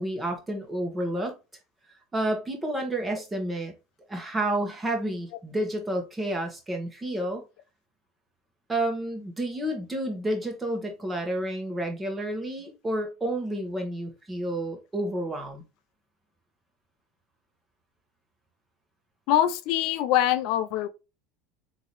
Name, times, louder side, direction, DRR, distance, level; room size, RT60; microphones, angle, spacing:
voice 1, 0.0-1.3 2.1-3.7 4.1-7.4 8.7-15.6, right 1 dB, 15° right, 1.3 m, -30 dB
voice 2, 19.3-20.9, left 12 dB, 65° left, 0.5 m, -23 dB
3.6 x 2.8 x 3.0 m
supercardioid pair, 105°, 0 cm